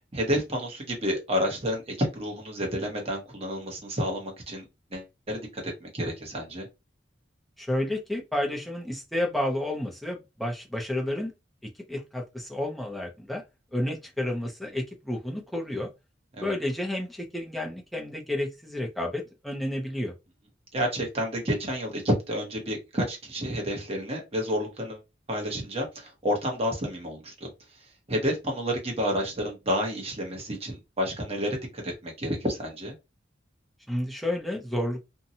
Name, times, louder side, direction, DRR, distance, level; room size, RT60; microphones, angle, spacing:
voice 1, 0.1-4.6 4.9-6.7 16.4-16.5 20.7-25.0 25.3-27.5 28.1-32.9, equal, 30° right, 0.9 m, -30 dB
voice 2, 7.6-11.3 11.9-13.4 13.7-15.9 16.4-20.1 33.9-35.0, left 1 dB, ahead, 0.5 m, -31 dB
2.7 x 2.2 x 2.7 m
head